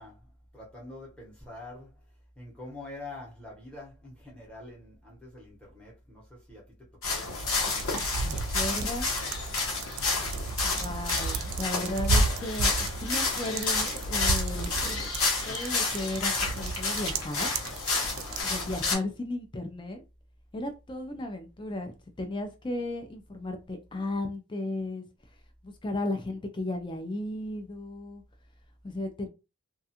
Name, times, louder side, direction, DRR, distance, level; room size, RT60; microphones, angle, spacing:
voice 1, 0.0-2.0 2.4-7.5 18.1-18.5, left 2 dB, 5° left, 0.8 m, -46 dB
sound 1, 7.0-18.9, left 3 dB, 85° left, 1.0 m, -30 dB
sound 2, 7.3-18.4, right 3 dB, 80° right, 0.3 m, -33 dB
voice 2, 8.2-9.1 10.6-15.1 15.5-17.6 18.4-20.0 20.5-25.0 25.6-28.2 28.8-29.3, left 1 dB, 20° left, 0.4 m, -35 dB
2.4 x 2.3 x 2.7 m
head